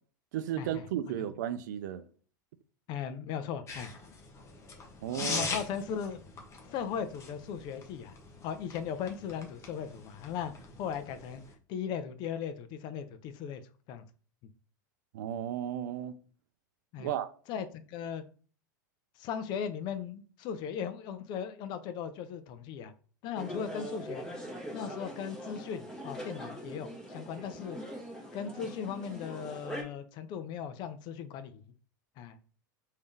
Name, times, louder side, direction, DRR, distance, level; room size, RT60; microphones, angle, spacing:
voice 1, 0.3-2.0 5.0-5.5 15.1-16.2 17.0-17.3, right 10 dB, 65° right, 0.4 m, -34 dB
voice 2, 2.9-3.9 5.3-6.2 6.7-8.2 8.4-11.4 11.7-13.6 13.9-14.0 16.9-17.1 17.5-18.2 19.2-22.9 23.2-24.3 24.7-27.8 28.3-31.6 32.2-32.4, left 7 dB, 45° left, 0.5 m, -37 dB
sound 1, 3.7-11.5, left 4 dB, 25° left, 0.9 m, -42 dB
sound 2, 23.4-29.8, equal, 5° left, 1.3 m, -42 dB
3.5 x 2.7 x 3.4 m
hypercardioid pair, 90°, 11 cm